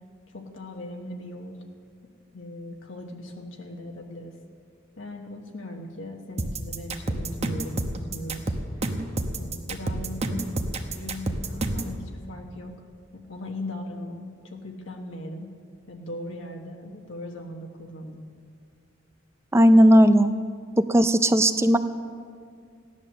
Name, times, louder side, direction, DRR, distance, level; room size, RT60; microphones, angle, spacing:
voice 1, 0.3-1.6 2.3-4.4 5.0-8.6 9.4-10.6 10.9-12.8 13.1-15.5 15.9-18.2, left 1 dB, 75° left, 1 dB, 1.3 m, -38 dB
sound 1, 6.4-11.9, right 2 dB, 35° right, 0.9 m, -29 dB
voice 2, 19.5-20.3 20.8-21.8, equal, 15° right, 11 dB, 0.5 m, -16 dB
16.0 x 11.0 x 6.7 m, 2.1 s
head